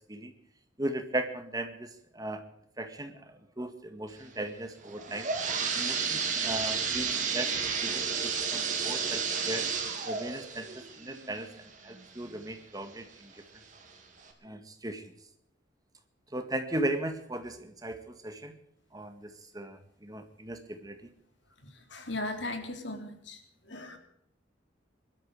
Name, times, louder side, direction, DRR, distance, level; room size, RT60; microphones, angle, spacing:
voice 1, 0.8-2.4 2.8-5.3 5.7-9.7 10.0-13.3 14.4-15.0 16.3-18.6 18.9-21.0, right 1 dB, 20° right, 7 dB, 1.9 m, -37 dB
sound 1, 4.8-12.4 12.9-13.0 13.8-13.9 14.3-14.4, right 6 dB, 40° right, 3.1 m, -32 dB
voice 2, 21.5-24.0, left 2 dB, 70° left, 5 dB, 3.2 m, -38 dB
22.0 x 13.0 x 4.8 m, 0.76 s
head